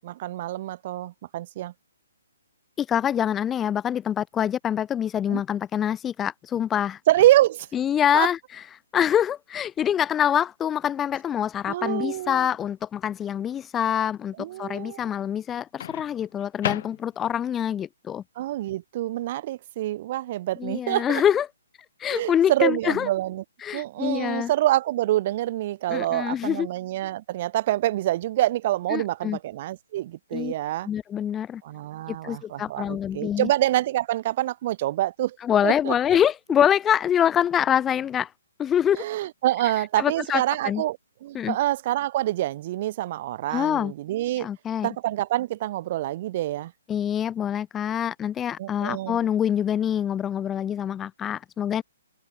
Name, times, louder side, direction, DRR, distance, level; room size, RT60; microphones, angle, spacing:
voice 1, 0.0-1.7 5.3-5.4 7.1-7.7 8.1-8.3 11.7-12.5 14.4-15.1 18.4-21.2 22.1-23.4 23.7-30.9 31.6-35.4 35.6-35.9 38.9-44.5 44.8-46.7 48.6-49.2, right 14 dB, 35° right, 0.6 m, -26 dB
voice 2, 2.8-7.0 7.7-8.7 8.9-14.3 14.6-18.2 20.6-21.5 22.0-23.1 23.6-24.5 25.9-26.7 28.9-29.4 30.3-30.5 30.9-31.6 32.1-33.5 35.4-38.3 38.6-39.0 39.8-40.8 41.3-41.6 43.5-43.9 44.4-44.9 46.9-51.8, left 9 dB, 15° left, 0.4 m, -25 dB
Microwave oven, 7.1-7.8 9.8-10.0 15.8-17.4, left 11 dB, 45° left, 2.7 m, -36 dB
hypercardioid pair, 155°, 0 cm